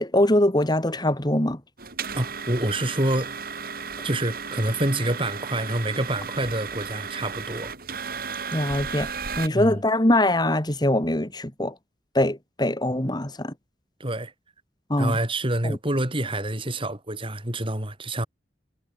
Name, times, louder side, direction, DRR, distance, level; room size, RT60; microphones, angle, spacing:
voice 1, 0.0-1.6 8.5-9.1 9.4-11.7 12.1-13.5 14.9-15.2 15.6-15.8, left 1 dB, 25° left, 2.8 m, -22 dB
sound 1, 1.8-9.5, right 5 dB, 55° right, 4.9 m, -34 dB
voice 2, 2.2-3.4 4.0-7.7 9.5-9.8 14.0-14.3 15.0-18.3, right 1 dB, 30° right, 5.7 m, -27 dB
head